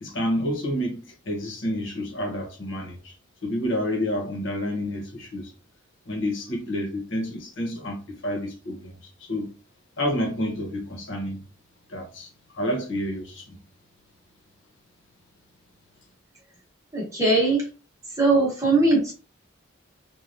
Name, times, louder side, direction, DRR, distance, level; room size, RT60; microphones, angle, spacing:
voice 1, 0.0-3.1 3.4-5.5 6.1-8.9 9.2-9.5 10.0-11.4 11.9-13.6, equal, 70° left, 0.9 m, -29 dB
voice 2, 16.9-17.6 18.2-19.1, right 2 dB, 15° right, 0.9 m, -20 dB
3.2 x 2.3 x 2.6 m
head